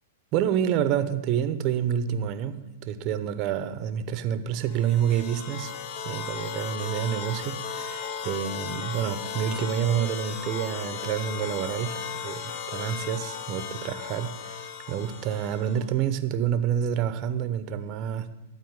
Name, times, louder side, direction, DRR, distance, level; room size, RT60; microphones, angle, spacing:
voice 1, 0.3-5.7 6.0-18.3, right 9 dB, 40° right, 0.8 m, -28 dB
sound 1, 4.7-15.9, left 7 dB, 50° left, 1.0 m, -36 dB
12.0 x 4.3 x 8.0 m
hypercardioid pair, 120°, 0 cm